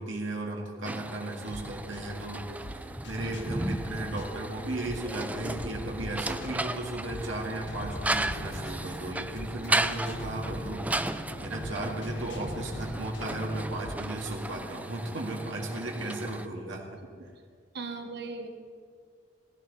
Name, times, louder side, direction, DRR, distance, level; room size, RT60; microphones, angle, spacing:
voice 1, 0.0-11.0 11.4-16.9, right 1 dB, 90° right, -1 dB, 2.1 m, -35 dB
sound 1, 0.8-16.5, right 2 dB, 10° right, 0.4 m, -35 dB
sound 2, 1.5-14.1, left 1 dB, 75° left, 1.5 m, -42 dB
sound 3, 8.4-13.8, equal, 50° left, 1.9 m, -44 dB
voice 2, 17.7-18.5, right 4 dB, 60° right, 6 dB, 1.3 m, -38 dB
15.5 x 15.5 x 4.1 m, 2.1 s
head